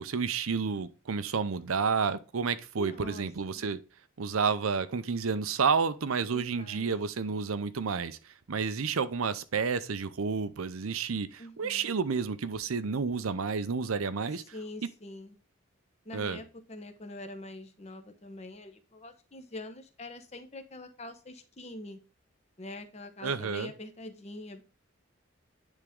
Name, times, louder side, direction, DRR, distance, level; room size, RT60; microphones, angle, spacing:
voice 1, 0.0-3.8 4.2-8.2 8.5-14.4 16.1-16.4 23.2-23.7, right 5 dB, 90° right, 0.6 m, -30 dB
voice 2, 2.8-3.6 6.3-6.9 11.4-11.9 14.5-15.4 16.1-22.0 22.6-24.6, left 1 dB, 30° left, 0.9 m, -44 dB
9.9 x 3.7 x 3.6 m
head